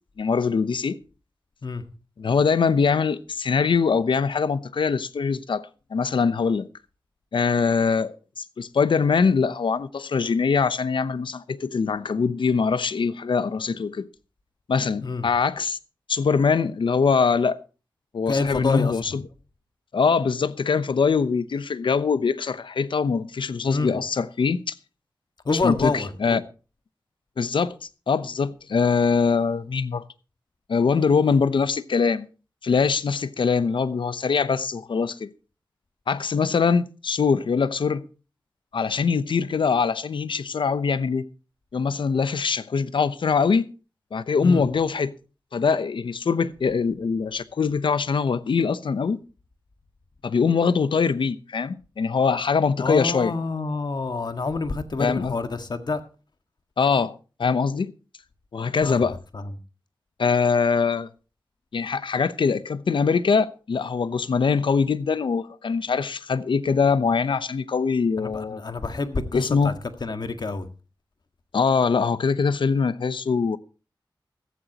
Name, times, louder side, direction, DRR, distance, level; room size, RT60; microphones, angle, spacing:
voice 1, 0.2-1.0 2.2-6.7 7.3-14.1 14.7-15.8 16.1-17.6 18.1-19.2 19.9-24.7 25.6-26.4 27.4-27.7 28.1-30.0 30.7-32.3 32.6-35.3 36.1-38.0 38.7-41.2 41.7-43.7 44.1-45.1 45.5-49.2 50.2-53.3 55.0-55.3 56.8-57.1 57.4-57.9 58.5-59.2 60.2-61.1 61.7-68.6 69.3-69.8 71.5-73.6, left 5 dB, 80° left, 0.8 m, -23 dB
voice 2, 18.3-19.0 23.7-24.0 25.5-26.4 44.4-44.6 52.8-56.0 58.8-59.5 68.2-69.7 70.0-70.7, left 3 dB, 60° left, 1.8 m, -27 dB
15.5 x 14.5 x 2.9 m
wide cardioid pair, 65°, 8 cm